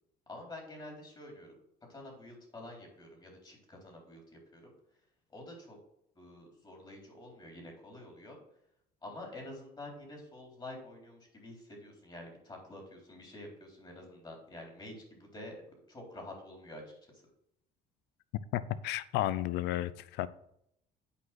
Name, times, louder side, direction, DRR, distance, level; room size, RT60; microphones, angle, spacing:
voice 1, 0.3-1.6 1.9-4.7 5.3-5.8 6.2-8.4 9.0-15.5 15.9-16.8 17.1-17.2, left 1 dB, 25° left, 3.7 m, -48 dB
voice 2, 18.5-20.3, left 14 dB, 90° left, 0.5 m, -32 dB
8.5 x 5.1 x 5.9 m
cardioid pair, 110°, 17 cm